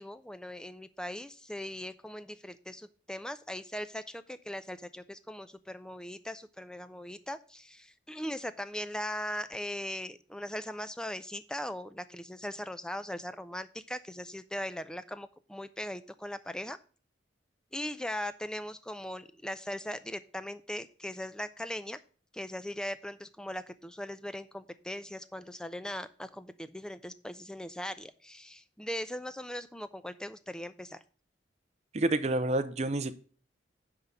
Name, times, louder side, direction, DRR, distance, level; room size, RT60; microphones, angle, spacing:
voice 1, 0.0-16.8 17.7-22.0 22.3-31.0, left 1 dB, 5° left, 13 dB, 0.4 m, -39 dB
voice 2, 31.9-33.1, right 2 dB, 35° right, 11 dB, 0.6 m, -28 dB
9.9 x 3.7 x 6.7 m, 0.41 s
head